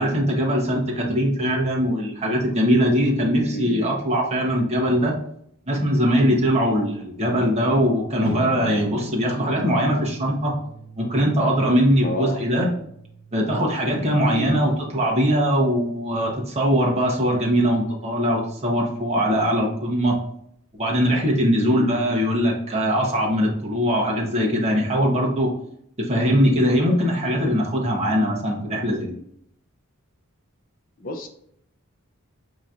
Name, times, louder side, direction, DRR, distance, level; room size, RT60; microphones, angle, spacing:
voice 1, 0.0-5.2 5.7-10.6 11.0-12.7 13.3-20.2 20.8-25.5 26.0-29.2, equal, 30° right, -2 dB, 1.0 m, -21 dB
voice 2, 3.3-4.0 12.0-12.4 13.9-14.6 21.6-21.9 31.0-31.3, left 1 dB, 40° left, 5 dB, 0.5 m, -30 dB
sound 1, 8.2-19.0, equal, 80° right, 0.7 m, -41 dB
5.6 x 3.0 x 2.5 m, 0.71 s
head